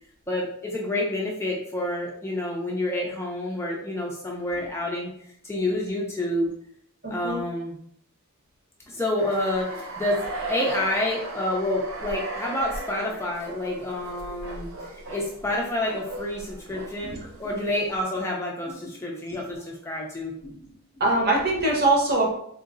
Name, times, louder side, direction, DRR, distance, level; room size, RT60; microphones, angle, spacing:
voice 1, 0.3-5.1 5.4-6.5 7.1-7.7 8.9-10.2 10.5-14.7 15.1-20.4, left 1 dB, 10° left, -3 dB, 0.5 m, -28 dB
voice 2, 7.0-7.4 17.0-17.2 20.4-20.5 20.9-22.3, right 2 dB, 45° right, -2 dB, 0.9 m, -23 dB
sound 1, 9.2-17.6, right 2 dB, 65° right, 0.6 m, -37 dB
3.8 x 2.7 x 2.5 m, 0.68 s
head